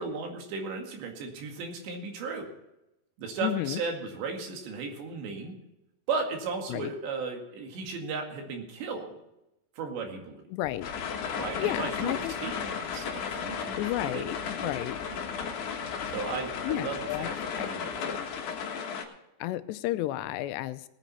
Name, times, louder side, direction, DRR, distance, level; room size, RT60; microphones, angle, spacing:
voice 1, 0.0-2.5 3.2-5.5 6.1-9.2 9.8-10.4 11.4-14.2 14.6-14.7 15.1-15.3 16.1-18.3, right 4 dB, 85° right, 2 dB, 4.4 m, -36 dB
voice 2, 3.4-3.8 6.7-6.9 10.5-10.9 11.6-12.3 13.8-14.4 14.6-15.0 16.6-17.3 17.6-17.7 19.4-20.9, left 15 dB, 85° left, 12 dB, 2.8 m, -31 dB
Aircraft, 10.6-19.0, left 6 dB, 20° left, 3.0 m, -51 dB
sound 1, 10.8-19.0, left 6 dB, 55° left, 2.5 m, -35 dB
18.5 x 9.2 x 4.3 m, 0.90 s
omnidirectional pair, 4.9 m